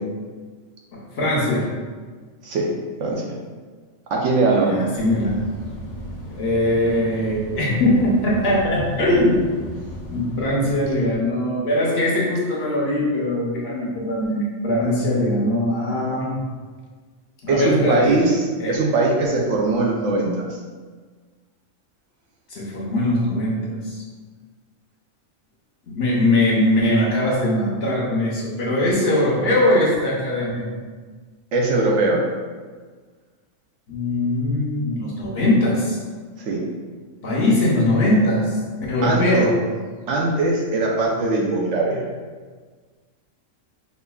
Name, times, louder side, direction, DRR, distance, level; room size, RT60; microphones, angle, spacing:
voice 1, 0.9-1.7 4.4-5.3 6.4-9.4 10.1-16.4 17.4-18.1 18.6-18.8 22.5-24.0 25.9-30.7 33.9-36.0 37.2-39.5, left 1 dB, 55° left, -4 dB, 0.8 m, -21 dB
voice 2, 2.4-3.3 4.1-4.7 17.5-20.6 31.5-32.2 36.5-36.6 39.0-39.5 40.1-42.0, right 2 dB, 70° right, -1 dB, 0.9 m, -21 dB
sound 1, 4.9-11.2, equal, 85° left, 1.2 m, -36 dB
5.1 x 2.4 x 2.2 m, 1.5 s
omnidirectional pair, 1.4 m